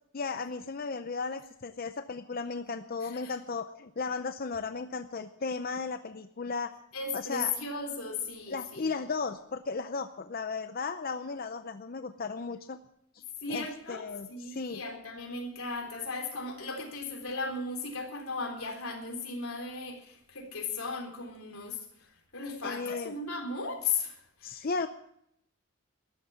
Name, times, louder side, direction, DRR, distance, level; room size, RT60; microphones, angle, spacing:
voice 1, 0.1-6.8 7.1-7.5 8.5-12.8 13.1-13.2 13.5-14.8 22.6-23.1 24.4-24.9, left 4 dB, 45° left, 9 dB, 0.6 m, -35 dB
voice 2, 3.0-3.3 6.9-9.0 13.4-21.8 22.3-24.7, left 4 dB, 90° left, 3 dB, 3.7 m, -36 dB
13.5 x 11.5 x 7.1 m, 0.73 s
head